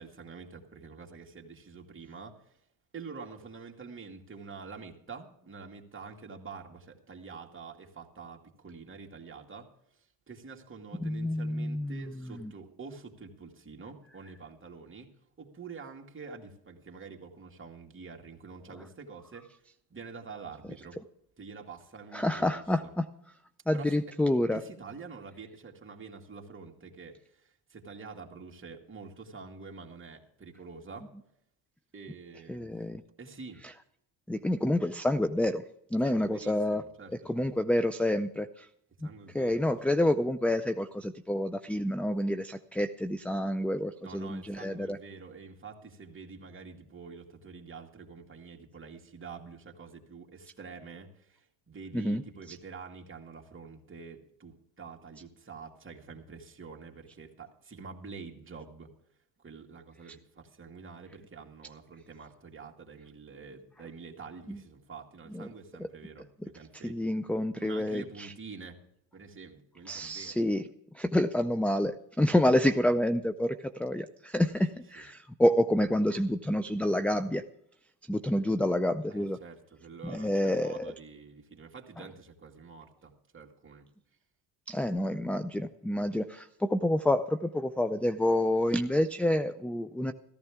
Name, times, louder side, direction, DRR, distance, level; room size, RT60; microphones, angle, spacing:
voice 1, 0.0-2.4 2.9-9.7 10.3-15.1 15.4-19.5 19.9-21.0 21.4-22.9 23.7-24.0 24.5-31.1 31.9-32.7 33.2-33.6 36.0-37.5 39.0-39.6 44.0-58.9 59.4-67.1 67.6-68.8 69.1-70.4 75.0-75.1 79.1-83.9, right 5 dB, 25° right, 1 dB, 2.4 m, -47 dB
voice 2, 11.0-12.5 22.1-23.1 23.7-24.6 32.5-33.0 34.3-35.6 35.9-36.8 37.2-38.7 39.0-45.0 51.9-52.2 52.5-52.6 64.5-64.6 65.3-65.5 65.8-65.9 66.8-68.3 69.9-70.7 70.9-77.4 78.1-79.4 80.0-80.9 82.0-82.1 84.7-90.1, left 1 dB, 5° left, 11 dB, 0.5 m, -28 dB
14.5 x 14.5 x 3.6 m, 0.75 s
supercardioid pair, 85°, 48 cm